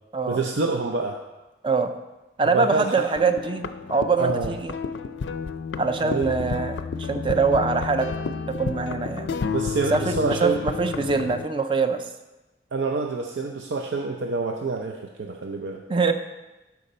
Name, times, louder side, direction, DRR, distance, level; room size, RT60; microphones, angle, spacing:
voice 1, 0.3-1.2 2.4-3.1 4.2-4.5 6.0-6.3 9.5-10.6 12.7-15.8, right 3 dB, 90° right, 2 dB, 0.6 m, -27 dB
voice 2, 2.4-4.7 5.8-8.1 8.5-9.4 9.9-12.0 15.9-16.1, right 4 dB, 30° right, 8 dB, 0.5 m, -24 dB
sound 1, 3.1-11.5, left 5 dB, 90° left, 0.4 m, -31 dB
12.0 x 4.8 x 4.2 m, 1.1 s
head